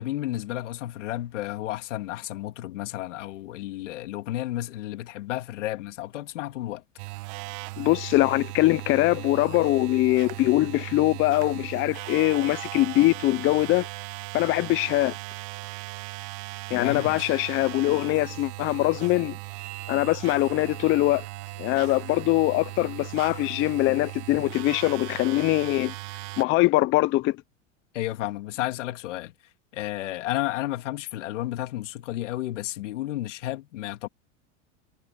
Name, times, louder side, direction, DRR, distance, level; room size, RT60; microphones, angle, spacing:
voice 1, 0.0-6.8 16.7-17.2 27.9-29.3 29.7-34.1, left 15 dB, 90° left, 2.2 m, -32 dB
sound 1, 7.0-26.4, right 21 dB, 65° right, 1.2 m, -38 dB
voice 2, 7.8-13.9 14.3-15.2 16.7-19.4 19.9-21.3 21.6-25.9 26.4-27.4, left 18 dB, 35° left, 0.5 m, -23 dB
supercardioid pair, 120°, 36 cm